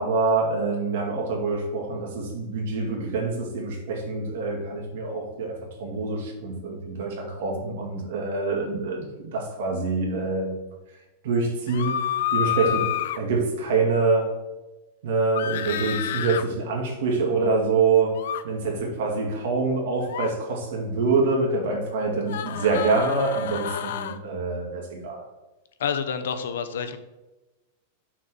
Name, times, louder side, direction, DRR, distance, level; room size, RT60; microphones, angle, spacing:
voice 1, 0.0-10.6 11.2-12.0 12.3-14.4 15.0-25.2, right 3 dB, 60° right, 0 dB, 2.2 m, -25 dB
sound 1, 11.7-13.2 15.4-16.4 18.1-18.4 20.0-20.3 22.3-24.2 25.9-26.0, left 10 dB, 65° left, 0.5 m, -29 dB
voice 2, 25.8-27.0, left 7 dB, 85° left, 9 dB, 0.8 m, -28 dB
6.1 x 4.1 x 6.1 m, 1.1 s
supercardioid pair, 175°, 0 cm